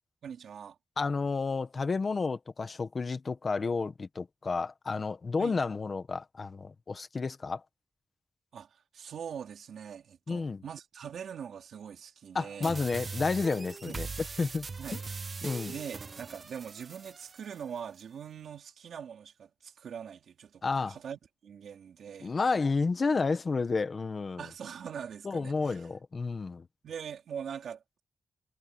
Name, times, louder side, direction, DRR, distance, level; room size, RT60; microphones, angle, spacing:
voice 1, 0.2-0.8 5.4-5.6 8.5-12.8 13.8-14.2 14.8-15.0 15.7-22.4 24.4-25.9 26.8-28.0, right 8 dB, 85° right, 4.0 m, -43 dB
voice 2, 1.0-7.6 10.3-10.6 12.3-14.1 14.4-14.7 15.4-15.7 20.6-21.0 22.2-24.4 25.2-26.7, left 4 dB, 40° left, 1.6 m, -31 dB
sound 1, 12.6-17.6, right 4 dB, 35° right, 0.5 m, -41 dB
wide cardioid pair, 130°, 0 cm